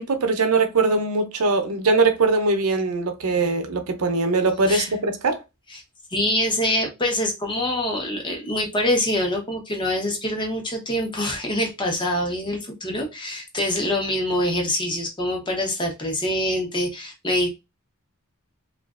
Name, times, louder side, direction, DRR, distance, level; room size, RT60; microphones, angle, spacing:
voice 1, 0.0-5.4, right 3 dB, 85° right, 0.7 m, -21 dB
voice 2, 6.1-17.5, left 1 dB, 20° left, 0.8 m, -25 dB
3.1 x 2.4 x 2.4 m
head